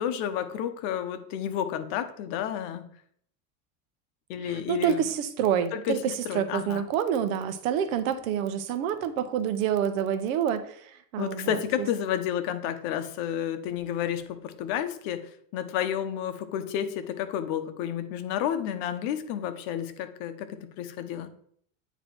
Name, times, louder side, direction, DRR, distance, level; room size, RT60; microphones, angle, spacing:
voice 1, 0.0-2.9 4.3-5.1 5.7-6.9 11.2-21.3, left 9 dB, 65° left, 9 dB, 0.9 m, -31 dB
voice 2, 4.5-6.0 6.3-11.6, right 9 dB, 90° right, 10 dB, 0.9 m, -27 dB
9.0 x 3.1 x 4.4 m, 0.64 s
supercardioid pair, 140°, 41 cm